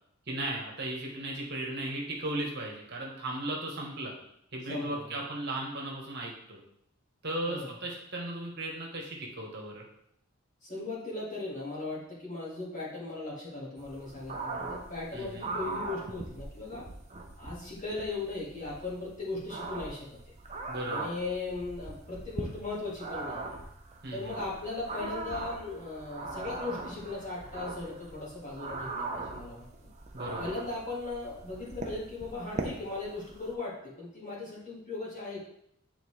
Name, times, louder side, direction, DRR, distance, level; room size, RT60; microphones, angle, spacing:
voice 1, 0.3-4.1 4.5-6.6 7.2-9.8 15.1-15.4 20.7-21.1 24.0-24.3 30.1-30.5, right 1 dB, 50° right, -1 dB, 1.4 m, -36 dB
voice 2, 4.6-5.3 7.4-7.8 10.6-16.9 17.4-20.1 20.9-23.5 24.1-29.7 30.4-35.5, left 3 dB, 35° left, -5 dB, 1.9 m, -38 dB
sound 1, 13.8-33.5, right 3 dB, 30° right, 0.7 m, -40 dB
9.4 x 3.9 x 3.3 m, 0.74 s
head